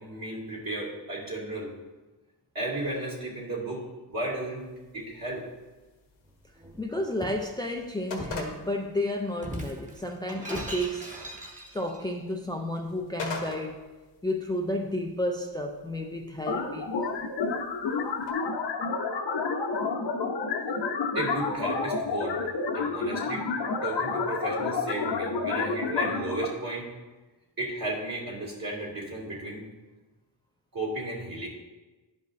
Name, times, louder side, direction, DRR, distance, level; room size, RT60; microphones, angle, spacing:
voice 1, 0.0-1.7 2.5-5.4 21.1-22.4 22.7-23.5 23.8-26.9 27.6-29.7 30.7-31.5, right 1 dB, 50° right, -4 dB, 2.5 m, -34 dB
sound 1, 4.6-18.3, left 3 dB, 85° left, 1.3 m, -45 dB
Shatter, 6.6-7.5 8.2-8.5 9.4-12.0, right 1 dB, 15° right, 1.3 m, -39 dB
voice 2, 6.8-11.2 11.7-13.8 14.2-16.9, left 1 dB, 10° left, 1 dB, 0.4 m, -31 dB
sound 2, 16.5-26.5, left 4 dB, 65° left, 0.9 m, -29 dB
11.0 x 5.3 x 2.6 m, 1.2 s
cardioid pair, 75°, 45 cm